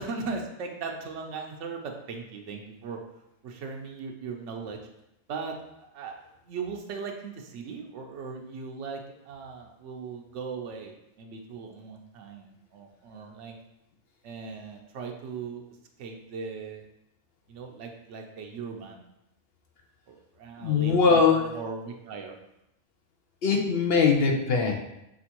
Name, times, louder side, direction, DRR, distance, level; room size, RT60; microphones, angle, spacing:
voice 1, 0.0-3.0 3.4-4.8 5.3-5.6 5.9-9.0 9.3-13.6 14.2-15.6 16.0-16.8 17.5-19.1 20.1-21.2 21.5-22.4, right 5 dB, 85° right, 2 dB, 0.9 m, -38 dB
voice 2, 20.6-21.5 23.4-24.7, left 5 dB, 60° left, 2 dB, 0.8 m, -21 dB
6.0 x 2.5 x 2.9 m, 0.85 s
omnidirectional pair, 1.2 m